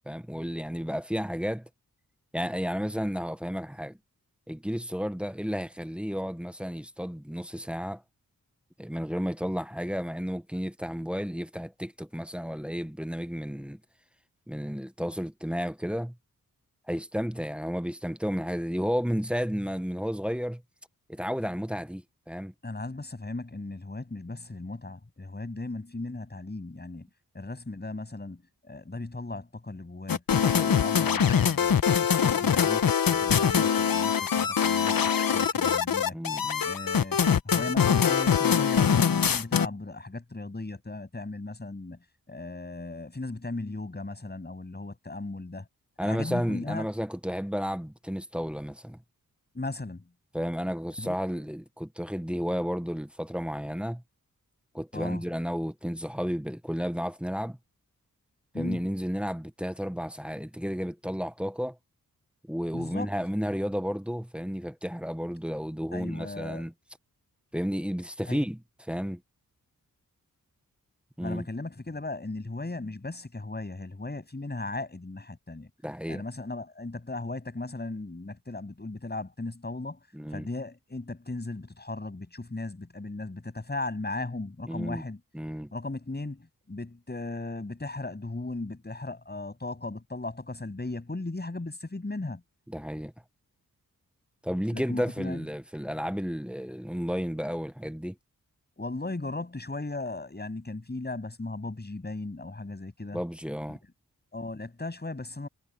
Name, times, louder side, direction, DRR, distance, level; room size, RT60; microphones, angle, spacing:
voice 1, 0.1-1.7 2.3-4.0 4.5-8.0 8.8-13.8 14.5-16.2 16.9-20.6 21.1-22.5 30.4-30.8 36.1-36.7 46.0-49.0 50.3-54.0 54.7-57.6 58.6-61.8 62.5-66.7 67.5-68.6 68.9-69.2 71.2-71.5 75.8-76.2 80.1-80.5 84.7-85.0 85.3-85.7 92.7-93.1 94.4-98.2 103.1-103.8, equal, 5° right, 0.9 m, -32 dB
voice 2, 22.6-27.1 27.3-36.2 36.6-45.7 46.0-46.9 49.5-50.1 51.0-51.2 54.9-55.2 58.5-58.9 62.7-63.1 65.9-66.6 68.3-68.4 71.2-75.7 76.1-80.0 80.3-85.2 85.7-92.4 94.7-95.5 98.8-103.2 104.3-105.5, left 2 dB, 30° left, 7.9 m, -37 dB
sound 1, 30.1-39.7, left 7 dB, 75° left, 1.3 m, -23 dB
wide cardioid pair, 95°, 35 cm